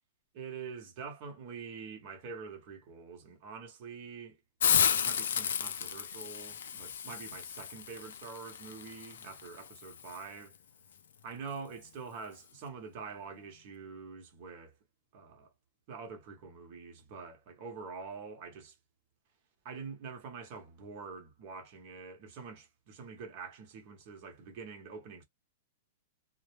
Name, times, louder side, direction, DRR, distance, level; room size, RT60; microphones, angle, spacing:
voice 1, 0.3-4.4 4.9-10.6 11.2-14.8 15.1-15.5 15.9-18.8 19.6-25.2, right 5 dB, 45° right, 0.9 m, -45 dB
Hiss, 4.6-10.2, left 8 dB, 80° left, 0.4 m, -33 dB
2.1 x 2.0 x 3.1 m
hypercardioid pair, 145°, 0 cm